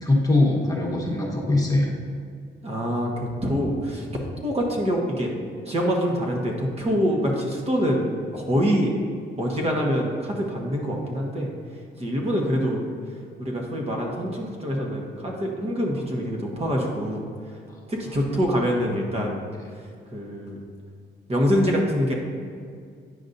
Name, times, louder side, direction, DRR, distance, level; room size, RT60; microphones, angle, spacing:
voice 1, 0.0-1.9 17.7-17.8, left 2 dB, 20° left, -2 dB, 1.2 m, -22 dB
voice 2, 2.6-4.1 4.4-5.3 5.6-8.9 9.4-11.5 12.0-12.8 13.4-17.2 17.9-19.4 20.1-20.6 21.3-22.1, equal, 30° right, -1 dB, 1.2 m, -25 dB
9.5 x 5.2 x 2.7 m, 2.2 s
cardioid pair, 90°, 20 cm